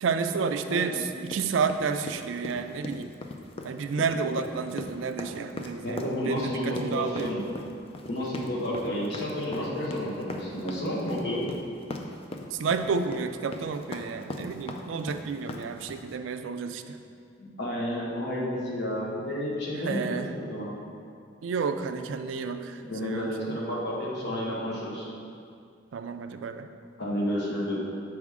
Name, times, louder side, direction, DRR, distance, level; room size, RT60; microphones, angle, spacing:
voice 1, 0.0-3.1 3.6-7.3 12.5-17.0 19.8-20.3 21.4-23.6 25.9-26.7, right 5 dB, 75° right, 8 dB, 0.3 m, -31 dB
voice 2, 0.7-1.0 5.8-7.5 8.1-11.4 17.4-20.7 22.8-25.1 27.0-27.8, equal, 60° left, -5 dB, 1.3 m, -31 dB
sound 1, 1.3-16.1, left 2 dB, 30° left, 0.3 m, -39 dB
6.1 x 4.8 x 3.6 m, 2.4 s
head